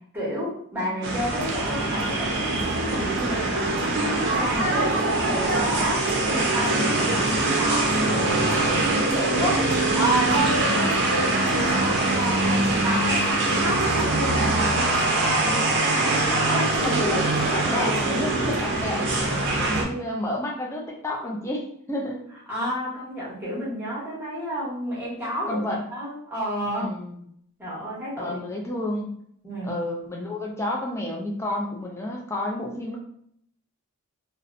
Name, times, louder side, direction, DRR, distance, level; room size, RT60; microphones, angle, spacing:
voice 1, 0.1-16.9 22.5-25.6 25.9-26.9 27.6-28.4 29.4-29.8, equal, 10° right, -8 dB, 0.8 m, -30 dB
sound 1, 1.0-19.8, right 2 dB, 50° right, 0.5 m, -23 dB
voice 2, 6.9-7.3 16.8-19.1 19.6-22.2 25.5-25.8 26.7-27.2 28.2-29.1 29.6-33.0, left 1 dB, 10° left, -1 dB, 0.3 m, -30 dB
2.6 x 2.0 x 2.4 m, 0.68 s
head